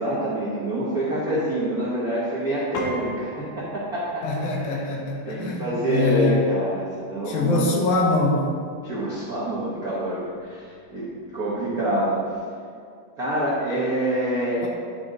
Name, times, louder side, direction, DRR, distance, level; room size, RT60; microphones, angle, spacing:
voice 1, 0.0-4.8 5.2-7.7 8.8-12.2 13.2-14.7, right 1 dB, 75° right, -7 dB, 0.8 m, -26 dB
Piano, 2.7-12.3, left 2 dB, 70° left, 2.7 m, -43 dB
voice 2, 4.2-6.5 7.3-8.5, left 3 dB, 90° left, -1 dB, 3.0 m, -23 dB
10.5 x 5.8 x 4.0 m, 2.3 s
omnidirectional pair, 4.0 m